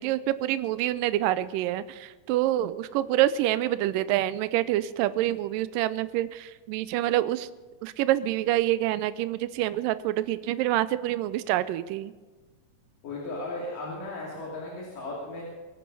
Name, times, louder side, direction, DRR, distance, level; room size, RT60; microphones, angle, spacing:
voice 1, 0.0-7.5 7.8-12.1, right 14 dB, 90° right, 14 dB, 2.3 m, -27 dB
voice 2, 13.0-15.4, left 2 dB, 75° left, -5 dB, 4.6 m, -36 dB
23.5 x 9.2 x 5.5 m, 1.3 s
omnidirectional pair, 3.8 m